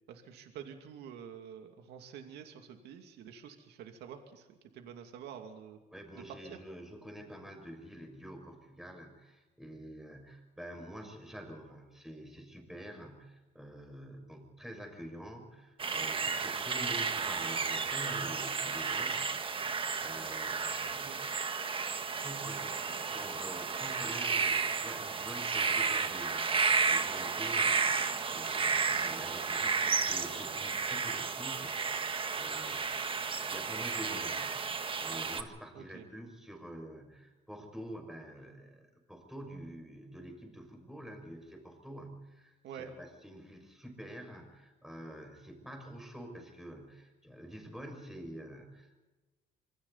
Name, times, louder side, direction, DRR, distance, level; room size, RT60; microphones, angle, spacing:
voice 1, 0.1-5.8 6.1-6.6 20.8-21.2 35.7-36.1 42.6-42.9, right 8 dB, 80° right, 5 dB, 2.6 m, -48 dB
voice 2, 5.9-21.1 22.2-26.5 26.9-49.0, equal, ahead, 3 dB, 6.3 m, -47 dB
sound 1, 15.8-35.4, right 5 dB, 30° right, 1.6 m, -32 dB
26.5 x 24.5 x 4.2 m, 1.2 s
cardioid pair, 110°, 17 cm